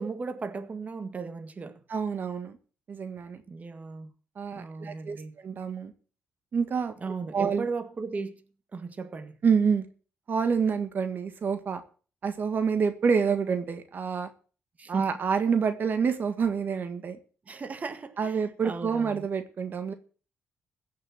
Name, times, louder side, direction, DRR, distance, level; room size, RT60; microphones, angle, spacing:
voice 1, 0.0-1.8 3.5-4.1 4.5-5.4 7.0-8.3 8.7-9.4 14.8-15.1 17.5-19.3, right 4 dB, 35° right, 1.8 m, -36 dB
voice 2, 1.9-2.6 2.9-3.4 4.4-5.9 6.5-6.9 7.3-7.7 9.4-9.8 10.3-11.8 12.2-14.3 14.9-17.2 18.2-19.9, right 6 dB, 55° right, 1.7 m, -27 dB
16.0 x 6.7 x 7.7 m
cardioid pair, 80°, 4 cm